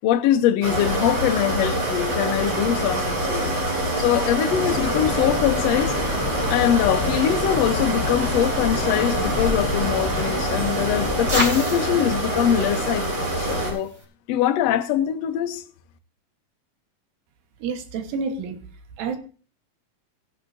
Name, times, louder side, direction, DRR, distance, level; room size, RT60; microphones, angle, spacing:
voice 1, 0.0-3.5 4.0-6.0 6.5-13.9 14.3-15.6, left 11 dB, 75° left, 1.5 m, -23 dB
sound 1, 0.6-13.7, right 1 dB, 50° right, 5.5 m, -25 dB
sound 2, 4.5-11.5, left 4 dB, 40° left, 1.4 m, -30 dB
sound 3, 8.9-14.0, equal, 25° right, 2.8 m, -34 dB
voice 2, 17.6-18.6 19.0-19.2, right 5 dB, 80° right, 3.0 m, -29 dB
17.5 x 10.5 x 2.6 m
omnidirectional pair, 4.0 m